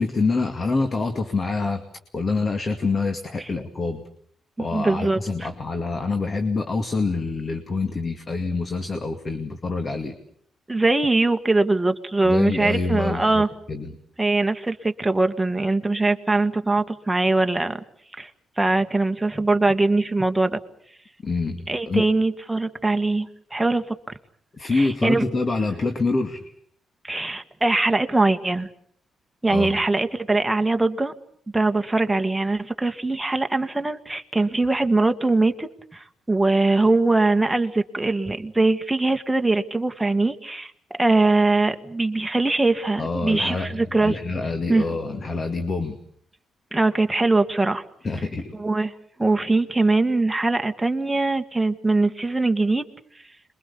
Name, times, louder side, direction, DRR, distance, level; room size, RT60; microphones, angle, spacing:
voice 1, 0.0-1.8 2.1-4.0 4.6-10.2 12.2-13.9 21.2-22.0 24.6-26.5 29.5-29.8 43.0-43.8 44.0-46.0 48.0-48.5, left 3 dB, 40° left, 7 dB, 2.3 m, -26 dB
voice 2, 4.6-5.5 10.7-13.5 14.2-17.8 18.2-18.3 18.6-20.6 21.7-24.0 24.7-25.2 27.0-28.7 29.4-31.1 31.5-40.7 41.0-44.2 44.7-44.8 46.7-47.8 48.6-48.9 49.2-52.8, right 2 dB, 10° right, 6 dB, 1.8 m, -22 dB
27.0 x 22.5 x 7.0 m, 0.63 s
cardioid pair, 85°, 0 cm